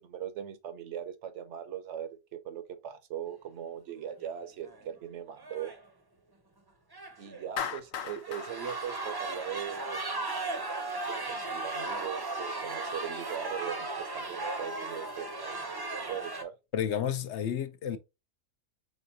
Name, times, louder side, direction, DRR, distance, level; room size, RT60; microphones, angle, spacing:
voice 1, 0.0-5.7 7.2-10.0 11.1-15.6 15.8-16.5, right 9 dB, 70° right, 1.0 m, -40 dB
sound 1, 4.2-4.4 4.7-4.8 5.4-5.8 6.9-7.5 8.0-16.4, right 2 dB, 25° right, 0.6 m, -36 dB
Clapping, 7.6-9.9, left 8 dB, 90° left, 1.1 m, -38 dB
voice 2, 16.7-18.0, left 9 dB, 70° left, 0.8 m, -31 dB
4.3 x 3.8 x 2.6 m
omnidirectional pair, 1.3 m